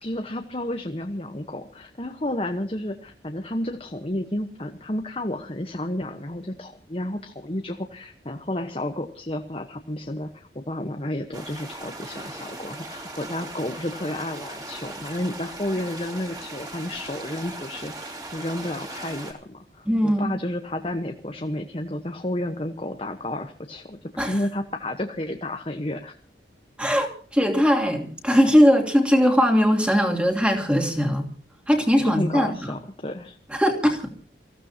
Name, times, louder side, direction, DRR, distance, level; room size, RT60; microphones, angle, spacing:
voice 1, 0.0-24.0 24.3-26.1 32.0-33.4, left 1 dB, 30° left, 5 dB, 1.1 m, -31 dB
sound 1, 11.3-19.3, right 2 dB, 20° right, 3.6 m, -38 dB
voice 2, 19.8-20.3 24.2-24.4 26.8-31.3 31.7-32.7 33.5-34.1, equal, 5° right, 2 dB, 2.9 m, -20 dB
29.0 x 15.5 x 2.9 m, 0.44 s
head